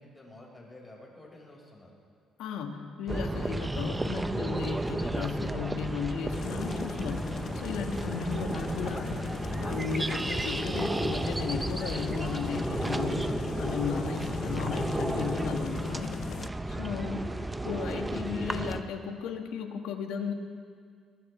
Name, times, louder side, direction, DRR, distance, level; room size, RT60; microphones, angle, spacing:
voice 1, 0.0-1.9 16.6-17.6, left 1 dB, 20° left, -2 dB, 4.9 m, -51 dB
voice 2, 2.4-9.2 9.6-16.1 16.8-17.2 17.6-20.3, left 5 dB, 85° left, 4 dB, 1.6 m, -35 dB
sound 1, 3.1-18.8, right 2 dB, 10° right, 0.7 m, -33 dB
sound 2, 3.1-18.8, right 4 dB, 45° right, 2.3 m, -54 dB
sound 3, 6.3-16.5, left 7 dB, 60° left, 0.4 m, -39 dB
21.0 x 21.0 x 3.3 m, 2.1 s
cardioid pair, 110°, 0 cm